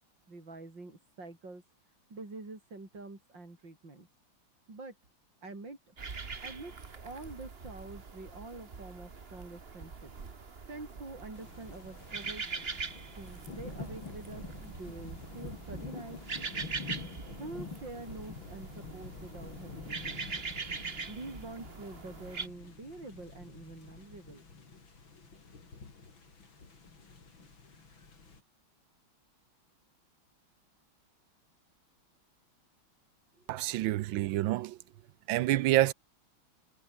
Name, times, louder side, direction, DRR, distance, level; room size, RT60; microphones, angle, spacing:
voice 1, 0.3-1.6 2.1-4.1 4.7-4.9 5.4-5.9 6.4-10.1 10.7-12.4 13.2-16.2 17.4-20.2 21.1-24.4 33.4-33.9, right 3 dB, 60° right, 6.8 m, -46 dB
sound 1, 6.0-22.5, right 4 dB, 30° right, 1.7 m, -42 dB
sound 2, 11.3-28.4, left 4 dB, 65° left, 4.6 m, -47 dB
voice 2, 33.5-34.8 35.3-35.9, right 15 dB, 75° right, 1.3 m, -27 dB
omnidirectional pair, 2.3 m